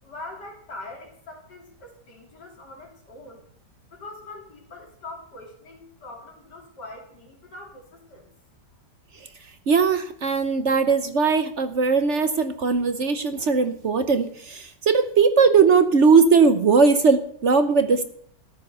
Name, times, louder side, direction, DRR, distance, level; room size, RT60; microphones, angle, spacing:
voice 1, 0.0-8.3 8.7-8.8, left 2 dB, 75° left, 0 dB, 3.9 m, -43 dB
voice 2, 9.7-18.0, right 5 dB, 50° right, 9 dB, 0.9 m, -19 dB
13.5 x 9.9 x 6.7 m, 0.64 s
omnidirectional pair, 1.9 m